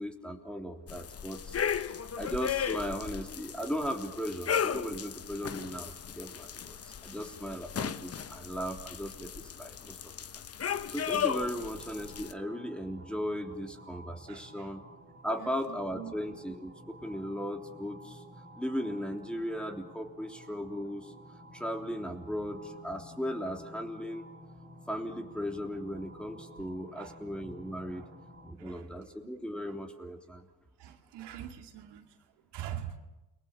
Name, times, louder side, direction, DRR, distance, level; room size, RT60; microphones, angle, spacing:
voice 1, 0.0-1.9 2.2-10.1 10.6-14.8 15.2-18.2 18.6-21.1 21.5-24.3 24.9-28.0 28.4-30.5, equal, ahead, 3 dB, 3.3 m, -37 dB
sound 1, 0.9-12.3, left 8 dB, 35° left, 1.0 m, -36 dB
sound 2, 10.9-28.5, equal, 25° right, 5.0 m, -52 dB
voice 2, 14.3-14.7 15.4-16.2 26.9-27.2 27.5-28.1 28.6-29.3 30.3-30.4 30.8-33.0, right 11 dB, 75° right, 4 dB, 2.4 m, -45 dB
29.5 x 20.5 x 7.3 m, 1.1 s
supercardioid pair, 85°, 41 cm